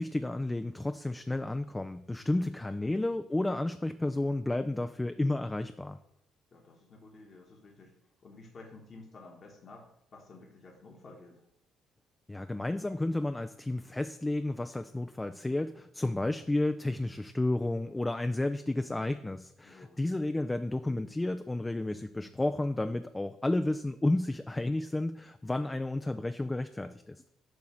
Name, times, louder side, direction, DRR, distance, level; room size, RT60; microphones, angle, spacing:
voice 1, 0.0-6.0 12.3-27.2, left 2 dB, 15° left, 8 dB, 0.4 m, -32 dB
voice 2, 6.5-7.9 8.2-11.4 19.6-20.1, left 3 dB, 45° left, -1 dB, 1.3 m, -52 dB
7.9 x 2.9 x 6.1 m, 0.74 s
hypercardioid pair, 50°, 0 cm